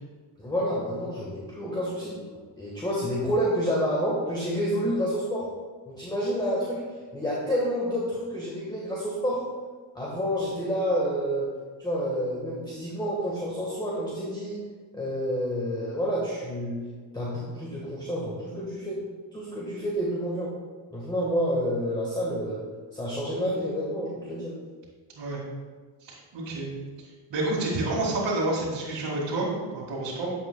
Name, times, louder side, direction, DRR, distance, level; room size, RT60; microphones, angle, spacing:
voice 1, 0.4-2.2 2.6-5.5 5.8-6.8 7.1-9.4 9.9-11.5 11.8-14.6 14.9-16.8 17.1-19.0 19.3-20.5 20.9-22.6 22.9-24.5, equal, 10° left, -5 dB, 1.5 m, -29 dB
voice 2, 26.0-26.7 27.3-30.3, right 2 dB, 60° right, -8 dB, 2.3 m, -29 dB
9.3 x 7.2 x 2.3 m, 1.5 s
cardioid pair, 95°, 47 cm